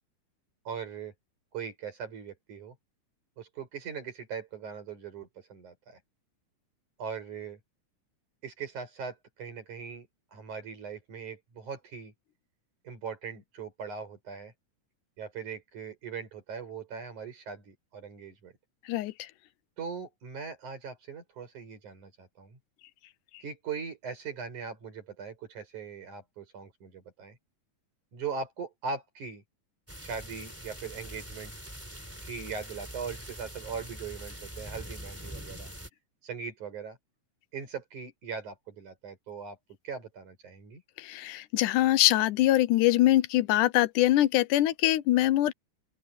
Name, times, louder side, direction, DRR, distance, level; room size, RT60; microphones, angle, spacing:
voice 1, 0.6-1.1 1.5-2.8 3.4-6.0 7.0-7.6 8.4-12.1 12.8-14.5 15.2-18.5 19.8-22.6 23.4-27.4 28.1-29.4 30.0-31.5 32.2-35.7 36.2-37.0 37.5-39.6 39.8-40.8, right 5 dB, 70° right, 6.8 m, -40 dB
sound 1, 29.9-35.9, equal, 5° right, 3.2 m, -43 dB
voice 2, 41.0-45.5, left 15 dB, 85° left, 2.2 m, -23 dB
open air
omnidirectional pair, 3.6 m